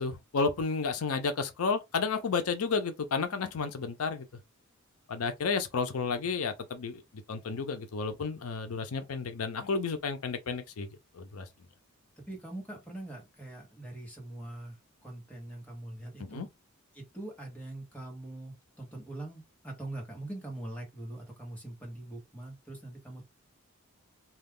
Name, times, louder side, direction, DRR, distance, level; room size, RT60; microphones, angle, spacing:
voice 1, 0.0-4.3 5.1-10.9 11.1-11.5 16.2-16.5, left 4 dB, 85° left, 0.5 m, -32 dB
voice 2, 5.9-6.3 12.2-16.5 16.9-23.2, right 1 dB, 5° left, 1.0 m, -43 dB
2.3 x 2.3 x 3.5 m
head